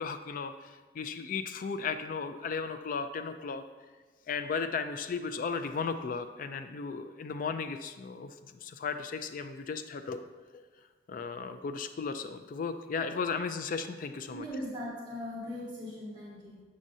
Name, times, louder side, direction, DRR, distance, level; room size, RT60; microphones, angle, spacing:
voice 1, 0.0-3.6 4.3-8.3 8.6-10.2 10.5-10.6 11.1-14.5, left 5 dB, 50° left, 9 dB, 0.3 m, -35 dB
voice 2, 14.3-16.6, left 1 dB, 25° right, -6 dB, 1.5 m, -39 dB
7.4 x 7.3 x 2.7 m, 1.3 s
head